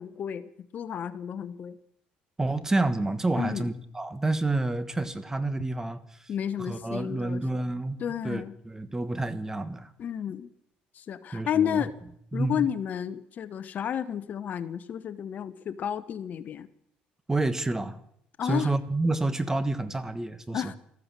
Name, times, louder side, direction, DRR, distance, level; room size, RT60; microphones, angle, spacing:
voice 1, 0.0-1.8 3.3-3.7 6.3-7.4 8.0-8.5 10.0-10.5 10.9-11.9 12.3-16.7 18.4-18.7 20.5-20.7, left 9 dB, 50° left, 14 dB, 0.9 m, -31 dB
voice 2, 2.4-6.3 6.7-9.9 11.3-11.8 12.3-12.7 17.3-18.0 18.4-20.7, right 2 dB, 15° right, 13 dB, 1.3 m, -29 dB
13.5 x 13.5 x 7.5 m, 0.70 s
supercardioid pair, 85°, 4 cm